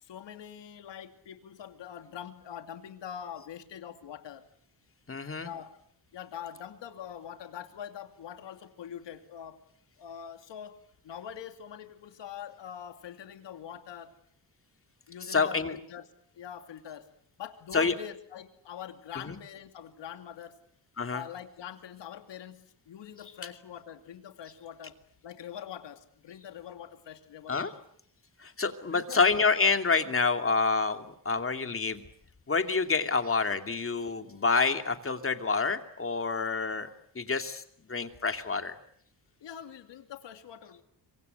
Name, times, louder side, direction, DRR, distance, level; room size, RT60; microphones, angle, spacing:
voice 1, 0.0-4.5 5.4-5.8 6.1-9.6 10.0-10.8 11.0-14.2 15.1-16.1 16.3-17.1 17.4-20.6 21.1-25.0 25.2-27.8 28.9-29.2 39.4-40.8, left 9 dB, 85° left, 7 dB, 2.8 m, -44 dB
voice 2, 5.1-5.5 15.3-15.8 17.7-17.9 19.2-19.4 21.0-21.2 27.5-27.7 28.4-32.0 32.5-36.9 37.1-37.6 37.9-38.7, left 4 dB, 30° left, 7 dB, 2.7 m, -27 dB
26.5 x 24.5 x 8.1 m, 0.65 s
cardioid pair, 105°, 42 cm